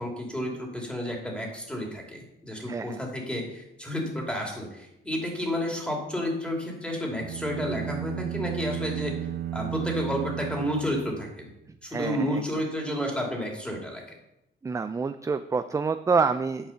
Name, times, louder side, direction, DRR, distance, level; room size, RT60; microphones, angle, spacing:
voice 1, 0.0-9.1 9.5-11.5 11.8-14.0, equal, 5° left, 0 dB, 2.7 m, -31 dB
voice 2, 2.7-3.0 11.9-12.4 14.6-16.7, right 4 dB, 15° right, 11 dB, 0.3 m, -27 dB
sound 1, 7.1-11.5, right 12 dB, 75° right, 0.6 m, -34 dB
8.9 x 5.5 x 5.6 m, 0.87 s
cardioid pair, 90°, 20 cm